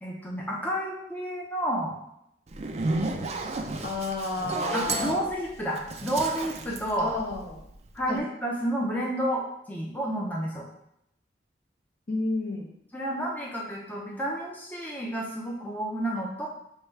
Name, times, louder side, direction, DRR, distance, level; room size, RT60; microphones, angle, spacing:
voice 1, 0.0-2.0 4.7-7.1 7.9-10.7 12.9-16.5, right 1 dB, 10° left, -3 dB, 0.6 m, -30 dB
Zipper (clothing), 2.5-7.7, right 3 dB, 40° right, 0.4 m, -32 dB
voice 2, 3.8-5.2 7.0-7.6 8.1-8.2 12.1-12.7, left 3 dB, 60° left, -1 dB, 0.9 m, -31 dB
6.5 x 2.3 x 3.2 m, 0.79 s
head